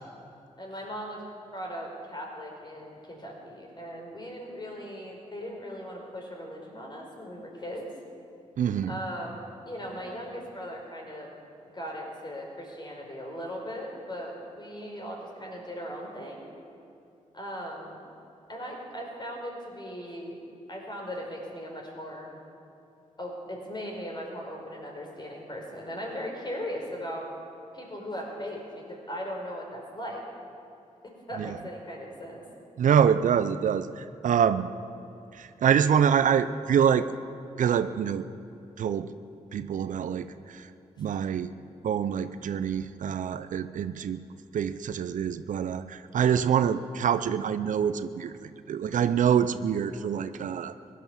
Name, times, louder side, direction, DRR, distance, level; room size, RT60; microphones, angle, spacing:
voice 1, 0.6-1.2 1.5-7.9 8.9-11.3 11.7-16.5 17.3-18.0 18.5-20.4 20.7-22.3 23.2-27.3 27.7-30.2 31.3-32.4 49.9-50.1, equal, 35° left, -1 dB, 4.9 m, -38 dB
voice 2, 8.6-9.0 31.4-31.6 32.8-34.7 35.3-37.1 37.6-38.2 38.8-39.1 39.5-40.7 41.0-41.5 41.8-44.2 44.5-50.7, right 8 dB, 70° right, 13 dB, 0.6 m, -25 dB
16.5 x 11.5 x 7.2 m, 2.7 s
cardioid pair, 55°, 14 cm